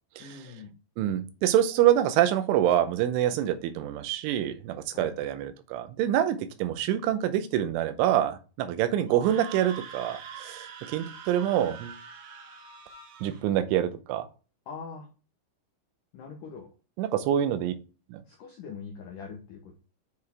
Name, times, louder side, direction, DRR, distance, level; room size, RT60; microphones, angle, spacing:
voice 1, 0.2-0.7 4.9-5.1 14.7-15.1 16.1-16.7 18.3-19.7, left 5 dB, 80° left, 1 dB, 1.8 m, -42 dB
voice 2, 1.0-12.0 13.2-14.3 17.0-17.7 18.1-18.2, right 11 dB, 85° right, 11 dB, 3.2 m, -26 dB
Screaming, 9.1-13.4, right 7 dB, 60° right, 2.5 m, -44 dB
8.3 x 4.8 x 3.5 m, 0.34 s
omnidirectional pair, 5.4 m